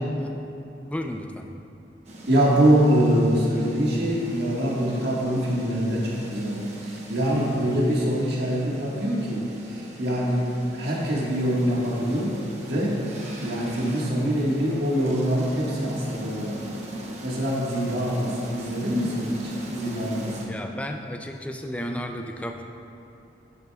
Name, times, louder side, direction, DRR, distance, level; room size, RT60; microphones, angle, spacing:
voice 1, 0.8-1.5 20.5-22.6, equal, 5° left, 4 dB, 0.3 m, -33 dB
sound 1, 2.0-20.5, right 1 dB, 35° right, 1.0 m, -40 dB
voice 2, 2.3-12.3 12.6-13.0 13.4-16.7 17.2-20.6, equal, 65° right, -5 dB, 1.6 m, -24 dB
10.5 x 8.1 x 2.3 m, 2.7 s
head